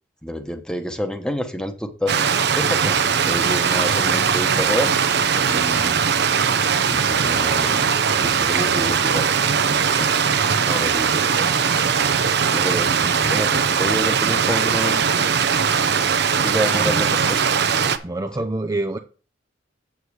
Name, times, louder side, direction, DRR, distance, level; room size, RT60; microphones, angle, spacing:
voice 1, 0.2-2.1 2.5-4.9 5.4-5.9 6.9-7.9 8.2-10.1 10.7-11.5 12.5-15.3 15.9-16.1 16.4-17.4, equal, 5° left, 1.1 m, -28 dB
Stream, 2.1-18.0, right 6 dB, 65° right, 0.8 m, -20 dB
voice 2, 13.0-13.4 16.8-17.0 18.0-19.0, right 2 dB, 20° right, 0.6 m, -27 dB
8.1 x 7.3 x 4.8 m
head